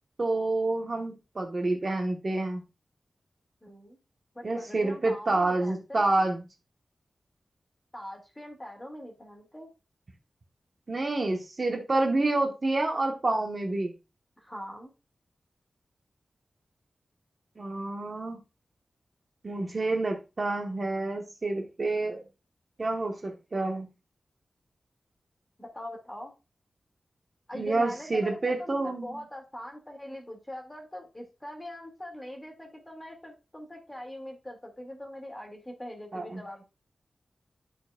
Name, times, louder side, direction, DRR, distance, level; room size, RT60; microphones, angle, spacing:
voice 1, 0.2-2.6 4.4-6.4 10.9-13.9 17.6-18.4 19.4-22.2 22.8-23.9 27.5-29.2 36.1-36.4, right 2 dB, 40° right, 2 dB, 1.0 m, -28 dB
voice 2, 3.6-4.0 4.3-6.4 7.9-9.7 14.4-14.9 25.6-26.3 27.5-36.6, left 1 dB, 15° left, 1 dB, 1.9 m, -42 dB
12.5 x 4.2 x 2.2 m, 0.27 s
wide cardioid pair, 115°, 0 cm